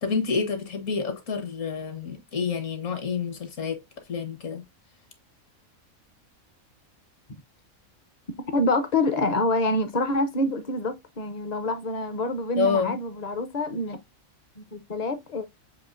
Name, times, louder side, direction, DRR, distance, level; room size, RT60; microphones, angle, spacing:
voice 1, 0.0-3.8 4.1-4.6 12.6-12.9, left 5 dB, 65° left, 1.6 m, -28 dB
voice 2, 8.5-14.0 14.6-15.5, left 2 dB, 40° left, 0.6 m, -26 dB
6.8 x 2.9 x 2.5 m
omnidirectional pair, 1.4 m